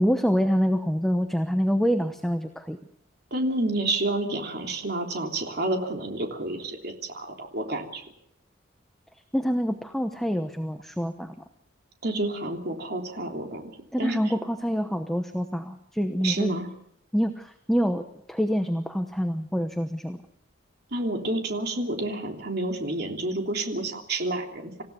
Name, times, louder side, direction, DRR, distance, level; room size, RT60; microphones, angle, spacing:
voice 1, 0.0-2.8 9.3-11.3 13.9-16.6 17.1-18.0 18.3-20.2, equal, ahead, 6 dB, 1.0 m, -26 dB
voice 2, 3.3-8.0 12.0-13.7 14.0-14.2 16.2-16.7 20.9-24.8, right 2 dB, 50° right, 2 dB, 3.3 m, -29 dB
27.0 x 16.0 x 7.0 m, 0.71 s
head